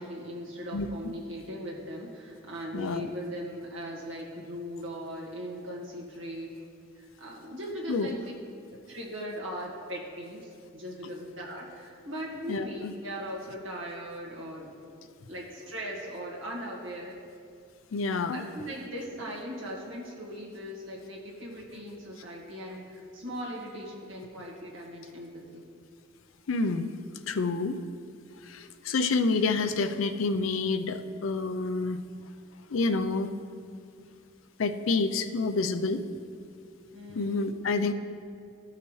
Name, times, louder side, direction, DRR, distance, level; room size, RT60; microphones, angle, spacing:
voice 1, 0.0-6.5 7.0-8.3 8.9-14.7 15.3-17.1 18.3-25.6 36.9-37.4, equal, 75° right, -2 dB, 1.8 m, -39 dB
voice 2, 2.7-3.1 7.9-8.2 12.5-12.9 17.9-18.4 26.5-26.9 27.3-27.8 28.5-32.0 32.7-33.3 34.6-36.0 37.1-37.9, left 3 dB, 85° left, 9 dB, 0.5 m, -28 dB
14.5 x 5.8 x 3.1 m, 2.3 s
head